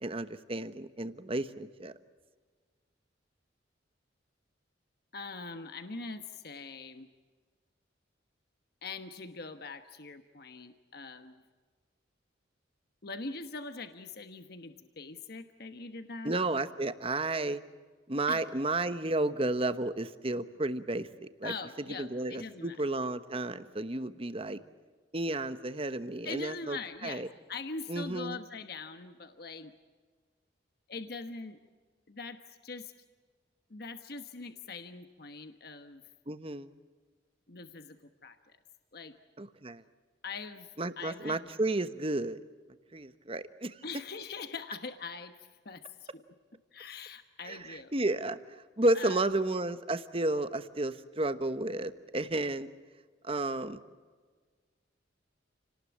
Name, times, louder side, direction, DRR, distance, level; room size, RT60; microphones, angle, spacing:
voice 1, 0.0-1.9 16.2-17.6 18.1-21.5 22.0-24.6 25.1-26.8 27.0-27.3 27.9-28.4 36.3-36.7 39.4-39.8 40.8-42.4 42.9-43.8 47.5-48.4 48.8-52.7 53.2-53.8, right 2 dB, 30° right, 11 dB, 1.1 m, -32 dB
voice 2, 5.1-7.1 8.8-11.4 13.0-16.4 18.3-18.4 21.4-22.8 26.2-27.2 27.5-29.7 30.9-31.6 32.1-32.9 33.7-36.0 37.5-38.6 38.9-39.1 40.2-41.5 43.8-46.2 46.7-47.9 48.9-49.4, left 4 dB, 55° left, 8 dB, 1.2 m, -42 dB
29.5 x 19.0 x 8.7 m, 1.5 s
head